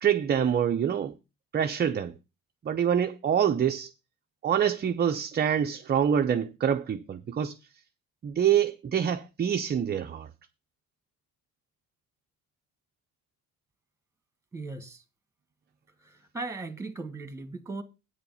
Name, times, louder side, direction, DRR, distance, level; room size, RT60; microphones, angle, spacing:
voice 1, 0.0-1.1 1.5-2.1 2.6-3.9 4.4-7.6 8.2-10.3, right 8 dB, 25° right, 0.5 m, -26 dB
voice 2, 14.5-15.0 16.0-17.8, right 3 dB, 10° right, 1.4 m, -38 dB
8.7 x 7.0 x 5.5 m
cardioid pair, 110°, 37 cm